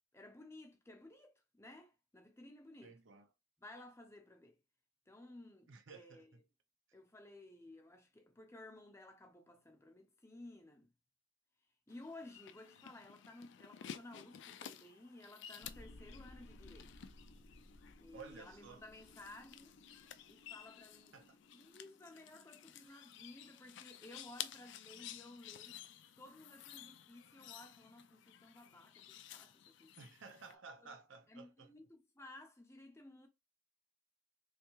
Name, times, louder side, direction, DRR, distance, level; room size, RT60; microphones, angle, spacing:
voice 1, 0.1-3.0 3.6-4.6 5.1-6.4 6.9-10.9 11.9-17.1 18.0-19.8 20.3-21.2 21.5-25.8 26.2-30.0 30.8-30.9 31.3-33.3, left 2 dB, 15° left, 0.7 m, -56 dB
voice 2, 2.8-3.3 5.7-6.4 12.8-12.9 18.1-18.8 21.1-21.4 30.0-31.7, right 4 dB, 65° right, 0.6 m, -55 dB
sound 1, 11.9-30.5, left 10 dB, 60° left, 0.3 m, -53 dB
sound 2, 15.6-22.9, left 1 dB, 85° left, 0.7 m, -60 dB
3.4 x 3.2 x 3.1 m
head